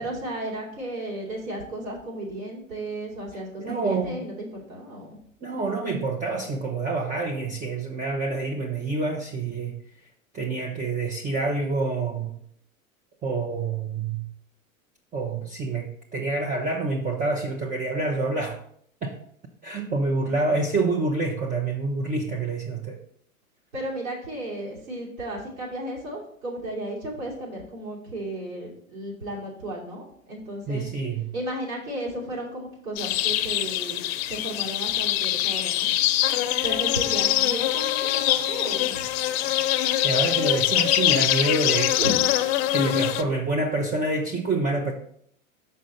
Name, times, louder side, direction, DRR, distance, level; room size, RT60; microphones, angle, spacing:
voice 1, 0.0-5.2 20.1-20.8 23.7-30.9 31.3-34.0 34.3-35.9 36.6-39.0 42.0-42.3, right 1 dB, 80° right, -5 dB, 2.7 m, -34 dB
voice 2, 3.6-4.2 5.4-9.7 10.3-12.3 13.2-14.2 15.1-18.6 19.0-19.2 19.6-23.0 30.7-31.3 40.0-42.0 42.7-44.9, right 3 dB, 20° right, 2 dB, 0.7 m, -27 dB
sound 1, 33.0-43.2, left 13 dB, 50° left, 0.6 m, -24 dB
6.2 x 5.4 x 4.0 m, 0.66 s
hypercardioid pair, 95°, 41 cm